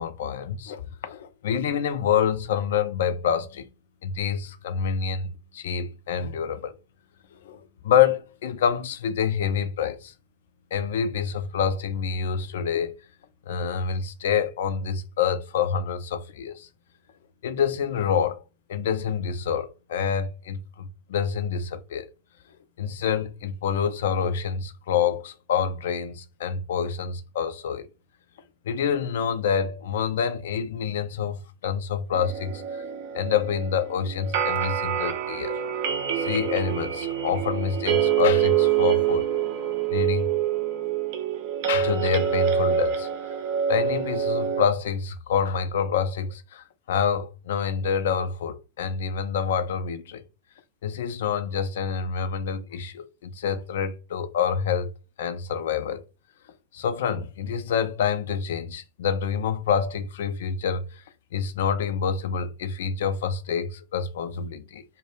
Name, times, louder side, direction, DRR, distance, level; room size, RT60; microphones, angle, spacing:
voice 1, 0.0-3.7 4.0-6.7 7.3-10.1 10.7-13.0 13.5-16.7 17.4-18.4 18.7-22.1 22.8-27.9 28.6-32.6 33.1-35.6 36.2-39.3 39.9-40.3 41.7-43.1 43.7-50.2 50.8-54.9 55.2-56.0 56.7-61.0 61.3-64.8, left 7 dB, 60° left, 0.3 m, -27 dB
sound 1, 32.1-44.7, right 9 dB, 50° right, 0.4 m, -26 dB
2.1 x 2.1 x 3.1 m
figure-of-eight pair, 90°, 0 cm